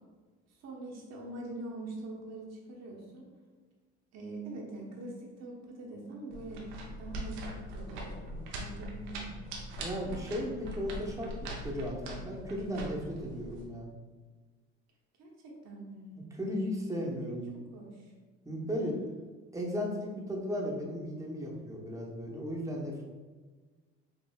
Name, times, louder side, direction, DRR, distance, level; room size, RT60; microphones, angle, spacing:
voice 1, 0.5-3.3 4.1-6.7 7.0-9.4 15.2-16.2 17.3-18.1, right 2 dB, 60° right, -2 dB, 1.0 m, -44 dB
sound 1, 6.3-13.6, right 1 dB, 85° right, 0.7 m, -42 dB
voice 2, 9.8-13.9 16.3-17.5 18.4-19.0 19.5-23.0, equal, 10° right, -2 dB, 0.9 m, -35 dB
5.3 x 2.4 x 2.3 m, 1.3 s
supercardioid pair, 85°, 29 cm